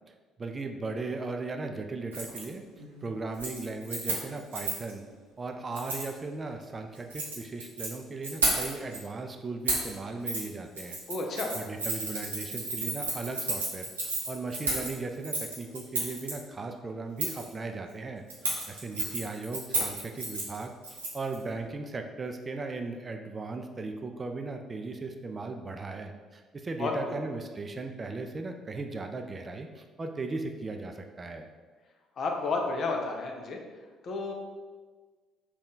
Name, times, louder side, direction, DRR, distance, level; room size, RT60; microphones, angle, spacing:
voice 1, 0.4-2.6 3.0-5.0 5.4-11.0 11.5-18.2 18.7-31.5, right 3 dB, 30° right, 4 dB, 0.3 m, -37 dB
Keys jangling, 2.1-2.4 2.8-3.1 3.3-4.9 5.7-6.1 6.9-7.9 8.2-9.0 9.7-9.9 10.3-10.4 10.7-16.3 17.2-17.5 18.3-21.3 21.6-21.7, right 2 dB, 85° right, 0.7 m, -32 dB
voice 2, 11.1-11.5 26.8-27.2 32.2-33.6 34.0-34.3, left 3 dB, 50° left, 2 dB, 0.5 m, -31 dB
3.5 x 2.3 x 3.8 m, 1.4 s
figure-of-eight pair, 50°, 0 cm